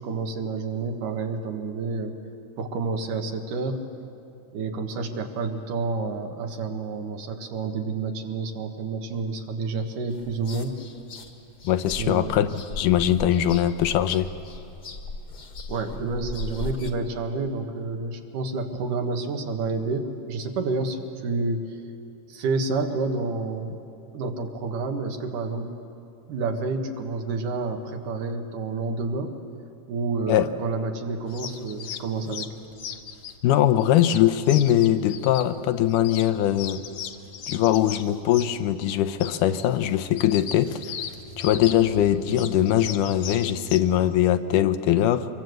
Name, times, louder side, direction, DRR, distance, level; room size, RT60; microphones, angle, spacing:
voice 1, 0.0-2.1 2.6-3.8 4.5-10.7 12.0-12.3 15.7-21.6 22.3-23.8 24.1-25.7 26.3-29.3 29.9-32.5, right 3 dB, 75° right, 5 dB, 3.0 m, -29 dB
sound 1, 10.1-16.9, left 3 dB, 40° left, 1.6 m, -38 dB
voice 2, 11.6-12.5 12.8-14.3 30.3-30.5 33.4-36.8 37.5-40.7 41.4-45.3, left 11 dB, 80° left, 11 dB, 2.2 m, -21 dB
sound 2, 31.3-43.8, left 7 dB, 65° left, 1.9 m, -38 dB
25.0 x 23.0 x 7.9 m, 2.7 s
omnidirectional pair, 3.7 m